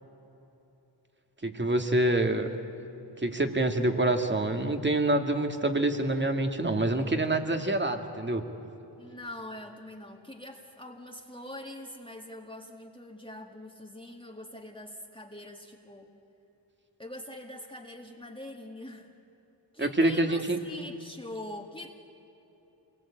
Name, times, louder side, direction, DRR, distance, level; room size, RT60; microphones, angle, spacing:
voice 1, 1.4-2.5 3.2-8.4 19.8-20.6, right 1 dB, 25° right, 6 dB, 2.2 m, -26 dB
voice 2, 9.0-16.1 17.0-19.1 19.7-21.9, left 1 dB, 10° left, 1 dB, 2.1 m, -43 dB
27.0 x 21.0 x 8.8 m, 3.0 s
cardioid pair, 65°, 42 cm